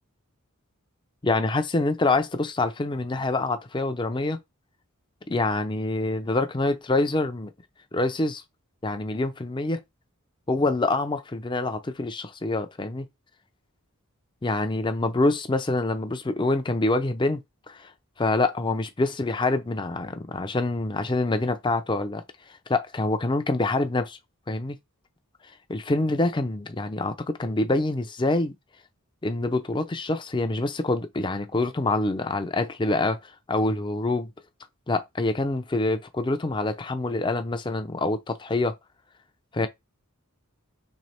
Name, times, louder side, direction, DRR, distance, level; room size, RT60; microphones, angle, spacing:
voice 1, 1.2-4.4 5.3-7.5 7.9-8.4 8.8-9.8 10.5-13.1 14.4-17.4 17.7-17.9 18.2-22.2 22.7-24.2 24.5-24.8 25.7-28.5 29.2-34.3 34.9-38.8 39.5-39.7, left 2 dB, 20° left, 0.5 m, -26 dB
3.4 x 3.2 x 4.2 m
head